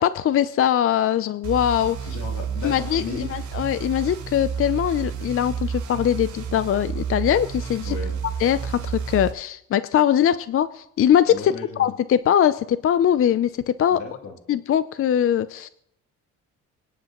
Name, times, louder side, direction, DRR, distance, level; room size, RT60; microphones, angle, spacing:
voice 1, 0.0-2.1 2.6-8.0 8.4-14.0 14.5-15.7, left 10 dB, 45° left, 14 dB, 0.5 m, -21 dB
sound 1, 1.4-9.3, right 7 dB, 70° right, 3.5 m, -31 dB
voice 2, 2.0-3.3 7.8-8.2 11.3-11.9 13.9-14.4, left 4 dB, 80° left, 1 dB, 3.0 m, -35 dB
24.5 x 10.0 x 3.0 m, 0.75 s
cardioid pair, 90°, 30 cm